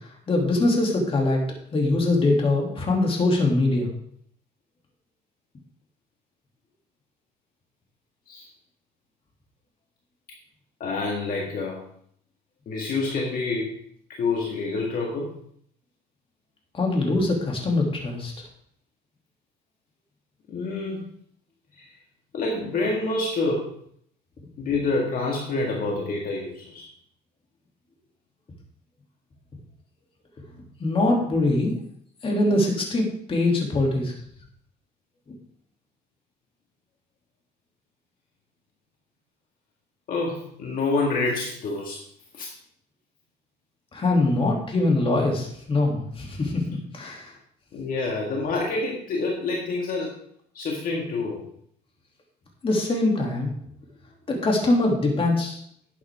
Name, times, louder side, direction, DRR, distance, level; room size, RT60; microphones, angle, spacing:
voice 1, 0.3-1.4 1.7-3.9 16.7-18.3 30.8-31.8 32.2-34.1 43.9-46.6 46.9-47.3 52.6-53.5 54.3-55.6, left 2 dB, 35° left, 0 dB, 2.9 m, -23 dB
voice 2, 10.8-11.8 12.7-13.8 14.1-15.3 20.5-21.1 21.7-21.9 22.3-23.8 24.6-26.9 40.1-42.0 42.3-42.5 47.7-50.2 50.5-51.5, left 3 dB, 55° left, -1 dB, 2.0 m, -27 dB
11.5 x 8.4 x 3.7 m, 0.66 s
cardioid pair, 110°, 17 cm